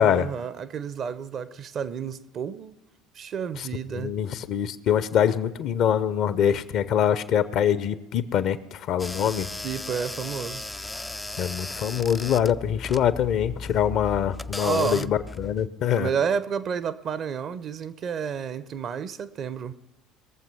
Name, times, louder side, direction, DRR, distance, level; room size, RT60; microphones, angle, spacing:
voice 1, 0.0-2.8 3.1-4.1 9.6-10.7 14.6-15.1 15.9-19.7, right 7 dB, 45° right, 0.7 m, -30 dB
voice 2, 3.9-9.5 11.4-16.1, left 9 dB, 50° left, 0.6 m, -24 dB
sound 1, 9.0-15.7, left 2 dB, 10° left, 0.3 m, -36 dB
21.5 x 7.4 x 5.4 m
figure-of-eight pair, 60°, 0 cm